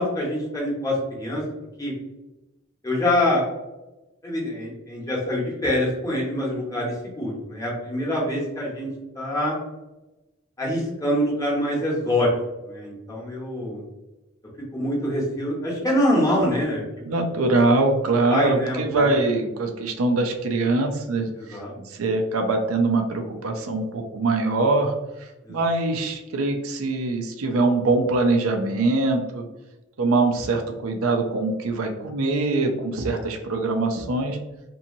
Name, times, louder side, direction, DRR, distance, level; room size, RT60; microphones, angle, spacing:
voice 1, 0.0-1.4 1.8-1.9 2.8-3.4 4.2-8.9 9.1-9.6 10.6-12.3 12.6-13.8 14.7-16.8 18.3-19.1 21.4-21.7 25.5-25.6, left 1 dB, 15° left, -4 dB, 0.8 m, -25 dB
voice 2, 17.0-29.5 30.0-34.4, right 3 dB, 85° right, 4 dB, 0.5 m, -23 dB
2.7 x 2.7 x 2.6 m, 1.0 s
head